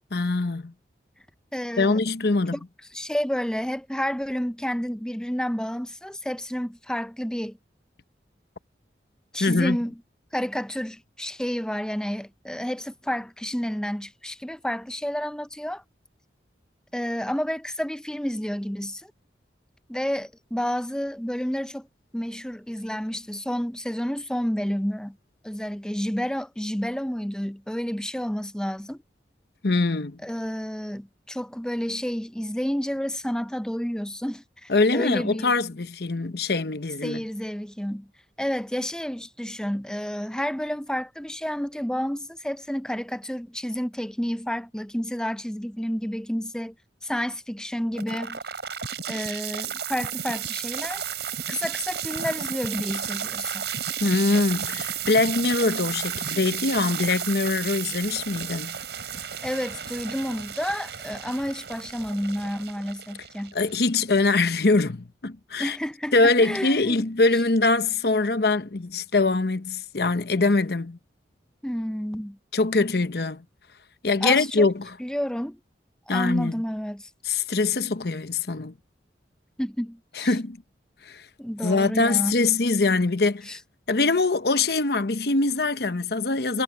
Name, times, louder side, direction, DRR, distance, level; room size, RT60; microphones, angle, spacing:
voice 1, 0.1-0.7 1.8-2.6 9.4-9.8 29.6-30.2 34.7-37.2 54.0-58.8 63.5-65.8 66.1-71.0 72.5-73.4 74.0-75.0 76.1-76.6 77.2-78.7 80.2-80.6 81.1-81.2 81.6-83.6 83.9-86.6, left 3 dB, 65° left, 0.9 m, -23 dB
voice 2, 1.5-2.0 2.5-2.6 2.9-7.6 9.3-9.9 10.3-15.8 16.9-19.1 19.9-21.9 22.1-25.2 25.4-29.0 30.2-35.5 37.0-38.1 38.4-46.7 47.0-48.4 49.1-51.1 51.5-53.6 59.4-63.5 65.6-67.0 71.6-72.4 74.2-74.7 75.0-75.6 76.1-77.1 79.6-80.3 81.4-82.3 83.5-83.6, equal, 5° left, 0.5 m, -30 dB
sound 1, 48.0-64.0, right 9 dB, 75° right, 4.4 m, -33 dB
head